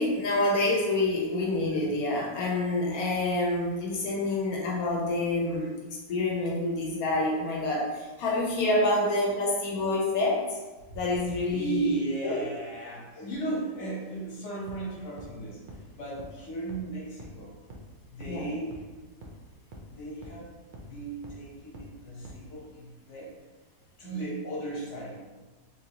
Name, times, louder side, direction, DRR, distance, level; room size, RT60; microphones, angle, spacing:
voice 1, 0.0-5.7 6.1-10.6 10.9-11.9 12.2-12.4 18.2-18.5, left 2 dB, 80° left, -3 dB, 1.1 m, -27 dB
voice 2, 11.5-17.6 18.1-18.8 19.9-20.5 20.8-23.3 24.0-25.2, right 2 dB, 55° left, -5 dB, 1.3 m, -36 dB
sound 1, 14.7-14.8 15.2-15.3 15.7-15.8 16.2-16.3 16.7-16.8 17.2-17.3 17.7-17.8 18.2-18.3 18.7-18.8 19.2-19.3 19.7-19.8 20.2-20.3 20.7-20.8 21.2-21.3 21.7-21.8 22.2-22.3, right 1 dB, 90° right, 0.4 m, -44 dB
3.6 x 2.6 x 2.8 m, 1.2 s
omnidirectional pair, 1.5 m